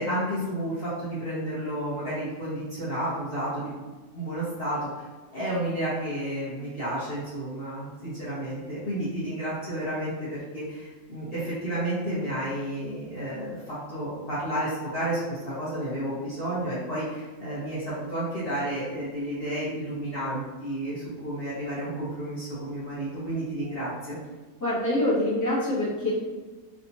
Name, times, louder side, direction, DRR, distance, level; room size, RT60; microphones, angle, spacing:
voice 1, 0.0-24.2, right 1 dB, 45° left, -11 dB, 1.0 m, -31 dB
voice 2, 24.6-26.1, left 1 dB, 15° left, -10 dB, 1.1 m, -25 dB
3.4 x 2.8 x 2.6 m, 1.3 s
omnidirectional pair, 1.6 m